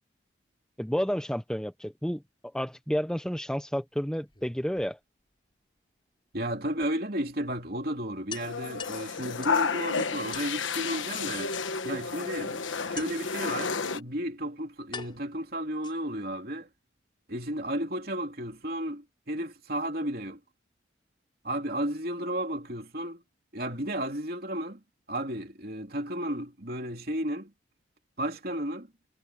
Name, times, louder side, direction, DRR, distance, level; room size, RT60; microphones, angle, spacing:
voice 1, 0.8-2.2 2.5-5.0, equal, 5° left, 0.6 m, -30 dB
sound 1, 4.3-5.3 6.8-6.9 7.3-7.4 7.7-7.8 8.3-9.7 10.3-10.6 11.5-12.1 13.0-13.4 14.2-14.3 14.9-16.3, left 6 dB, 25° left, 7.1 m, -44 dB
voice 2, 6.3-11.5 11.8-16.7 17.3-20.4 21.4-23.2 23.5-24.8 25.1-27.5 28.2-28.9, right 1 dB, 50° right, 3.2 m, -33 dB
sound 2, 8.3-14.0, left 5 dB, 85° left, 1.3 m, -31 dB
head